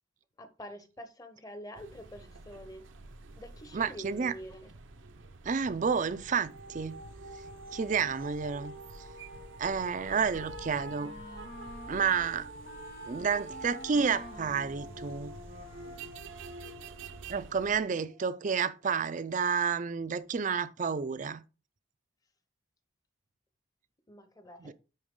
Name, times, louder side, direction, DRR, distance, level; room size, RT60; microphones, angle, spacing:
voice 1, 0.4-2.9 3.4-4.7 24.1-24.7, equal, 20° left, 0.8 m, -46 dB
sound 1, 1.7-17.8, right 4 dB, 70° right, 0.7 m, -49 dB
voice 2, 3.7-4.3 5.4-7.0 7.7-8.7 9.6-11.1 11.9-12.5 13.1-15.4 17.3-21.4 24.6-24.7, right 6 dB, 40° right, 0.4 m, -30 dB
sound 2, 6.0-18.9, right 1 dB, 90° right, 1.7 m, -48 dB
Wind instrument woodwind instrument, 9.8-16.3, left 2 dB, 55° left, 2.1 m, -49 dB
10.0 x 4.0 x 3.7 m
head